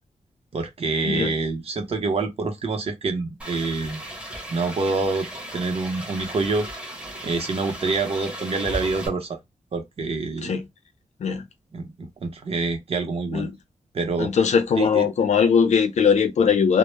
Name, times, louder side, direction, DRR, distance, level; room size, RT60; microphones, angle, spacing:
voice 1, 0.5-4.0 4.5-5.3 5.5-6.7 7.2-9.4 9.7-10.5 11.7-13.5 13.9-14.3 14.8-15.1, right 3 dB, 50° right, 0.7 m, -26 dB
sound 1, 3.4-9.1, right 1 dB, 10° right, 0.7 m, -36 dB
voice 2, 14.2-16.8, left 6 dB, 65° left, 0.4 m, -20 dB
2.1 x 2.0 x 3.1 m
wide cardioid pair, 150°, 13 cm